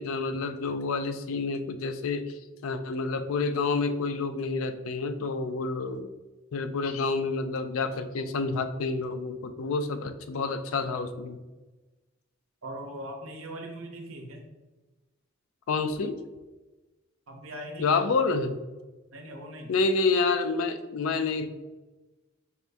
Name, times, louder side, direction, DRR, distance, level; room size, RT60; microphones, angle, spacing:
voice 1, 0.0-6.1 6.5-11.4 15.7-16.2 17.8-18.6 19.7-21.5, left 4 dB, 90° left, 9 dB, 0.4 m, -28 dB
voice 2, 12.6-14.4 17.3-18.1 19.1-19.7, right 1 dB, 85° right, 3 dB, 0.7 m, -40 dB
4.3 x 2.6 x 3.2 m, 1.2 s
head